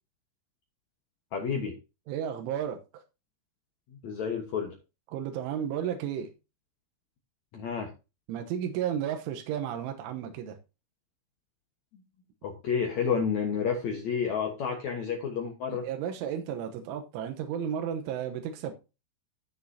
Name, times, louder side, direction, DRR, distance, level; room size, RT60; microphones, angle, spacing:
voice 1, 1.3-1.7 4.0-4.7 7.5-7.9 12.4-15.8, left 6 dB, 90° left, 2 dB, 1.6 m, -30 dB
voice 2, 2.1-3.0 5.1-6.3 8.3-10.6 15.8-18.7, right 9 dB, 85° right, 5 dB, 3.5 m, -33 dB
15.0 x 6.5 x 2.8 m, 0.28 s
omnidirectional pair, 5.5 m